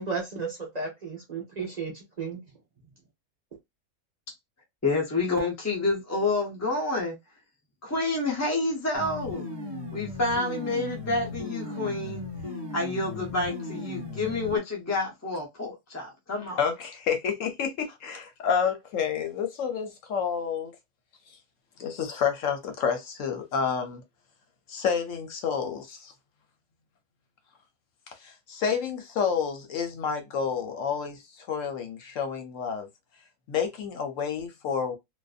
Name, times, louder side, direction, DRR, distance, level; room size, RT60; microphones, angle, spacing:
voice 1, 0.0-2.4, right 4 dB, 40° right, 0.7 m, -34 dB
voice 2, 4.8-7.2 7.8-9.4 9.9-12.3 12.7-16.6, left 2 dB, 25° left, 0.3 m, -28 dB
sound 1, 8.9-14.6, left 2 dB, 20° right, 1.0 m, -37 dB
voice 3, 16.6-20.7 21.8-24.0 24.7-26.1 28.1-32.9 33.5-35.0, left 7 dB, 65° left, 1.0 m, -29 dB
2.5 x 2.5 x 2.3 m
omnidirectional pair, 1.5 m